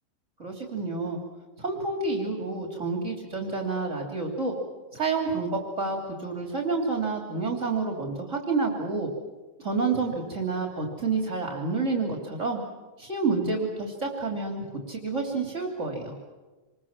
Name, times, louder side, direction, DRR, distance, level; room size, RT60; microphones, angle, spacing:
voice 1, 0.4-1.2 1.6-4.5 4.9-9.1 9.6-12.6 13.0-16.1, right 3 dB, 65° right, 1 dB, 3.4 m, -29 dB
26.5 x 22.0 x 7.4 m, 1.2 s
omnidirectional pair, 1.4 m